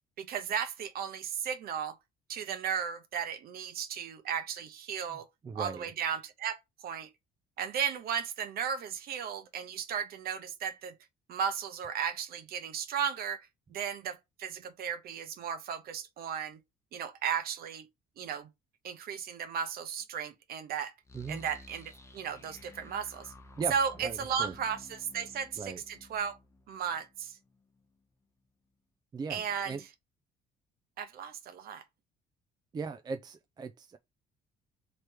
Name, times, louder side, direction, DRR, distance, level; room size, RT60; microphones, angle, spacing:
voice 1, 0.2-2.0 2.3-5.3 5.5-6.6 6.8-7.1 7.6-10.9 11.3-16.6 16.9-17.9 18.2-18.5 18.8-20.9 21.3-23.3 23.7-26.4 26.7-27.4 29.3-29.8 31.0-31.8, right 7 dB, 65° right, 1.0 m, -35 dB
voice 2, 5.1-5.9 21.1-21.5 23.6-24.5 25.6-25.8 29.1-29.8 32.7-34.0, right 4 dB, 25° right, 0.4 m, -39 dB
sound 1, 21.0-27.9, left 2 dB, 15° left, 0.8 m, -54 dB
3.3 x 3.1 x 4.6 m
cardioid pair, 110°, 17 cm